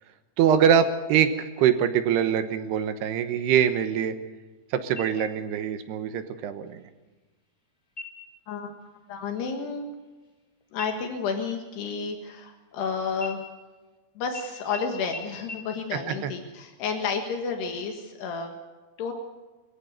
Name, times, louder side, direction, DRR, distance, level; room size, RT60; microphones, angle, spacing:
voice 1, 0.4-4.2 4.7-6.9 15.9-16.3, right 8 dB, 75° right, 9 dB, 3.1 m, -23 dB
sound 1, 5.0-5.6 6.0-6.1 6.7-7.2 7.9-8.4 8.8-9.1 9.4-10.5 10.8-12.8 13.2-14.0 14.3-14.4 14.7-14.8 15.1-15.2 15.5-15.6, left 2 dB, 10° left, 3.1 m, -43 dB
voice 2, 9.1-9.9 10.7-13.4 14.2-18.6 19.0-19.1, left 5 dB, 75° left, 4 dB, 3.7 m, -31 dB
23.0 x 14.5 x 8.1 m, 1.2 s
omnidirectional pair, 4.9 m